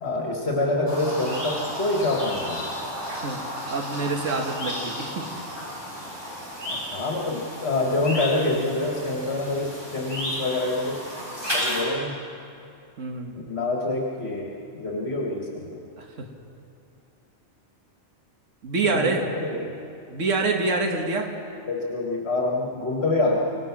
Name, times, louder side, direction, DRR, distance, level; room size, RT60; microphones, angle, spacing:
voice 1, 0.0-2.7 6.7-11.0 11.5-12.2 13.5-15.7 18.8-19.7 21.7-23.4, left 2 dB, 55° left, -1 dB, 2.0 m, -26 dB
sound 1, 0.9-11.8, equal, 20° right, 7.3 m, -33 dB
voice 2, 3.1-3.4 3.7-5.2 13.0-13.4 16.0-16.3 18.6-19.3 20.1-21.3, right 3 dB, 75° right, 2 dB, 1.8 m, -26 dB
27.0 x 17.0 x 6.1 m, 2.6 s
omnidirectional pair, 1.3 m